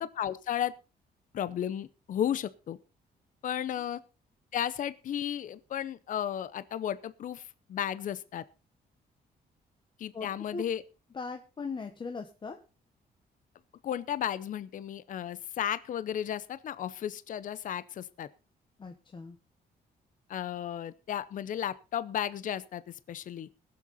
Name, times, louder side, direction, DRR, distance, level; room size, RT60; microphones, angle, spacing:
voice 1, 0.0-0.7 1.3-2.8 3.4-4.0 4.5-8.4 10.0-10.8 13.8-18.3 20.3-23.5, left 10 dB, 50° left, 16 dB, 0.6 m, -34 dB
voice 2, 10.1-10.6 11.1-12.6 18.8-19.4, left 4 dB, 30° left, 5 dB, 1.1 m, -39 dB
21.0 x 7.6 x 4.0 m, 0.33 s
cardioid pair, 140°, 17 cm